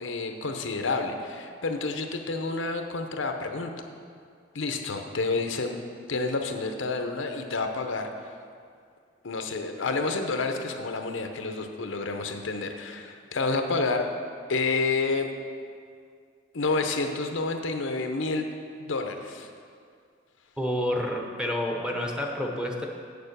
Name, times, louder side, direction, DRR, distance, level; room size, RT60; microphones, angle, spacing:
voice 1, 0.0-3.7 4.5-5.8 6.1-8.1 9.2-14.1 14.5-15.3 16.5-18.5 18.8-19.5, left 3 dB, 85° left, 5 dB, 0.8 m, -29 dB
voice 2, 20.6-22.9, left 1 dB, 5° right, 0 dB, 0.9 m, -29 dB
8.0 x 6.8 x 6.7 m, 2.2 s
head